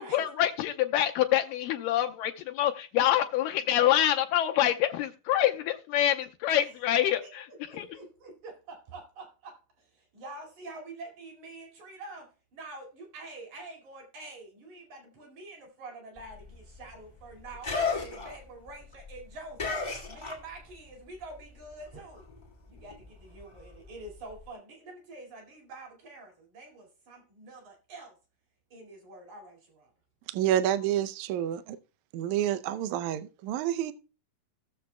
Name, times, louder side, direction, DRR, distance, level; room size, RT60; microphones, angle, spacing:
voice 1, 0.0-7.5 7.7-7.9, left 12 dB, 85° left, 2.3 m, -26 dB
voice 2, 6.5-6.8 7.2-7.3 7.7-22.2 22.7-28.2 28.7-29.9, right 2 dB, 60° right, 3.6 m, -46 dB
sound 1, 16.2-20.9 21.1-24.5, left 4 dB, 60° left, 0.4 m, -36 dB
voice 3, 30.3-31.8 32.1-33.9, right 11 dB, 75° right, 1.9 m, -29 dB
17.5 x 6.9 x 2.2 m
omnidirectional pair, 3.9 m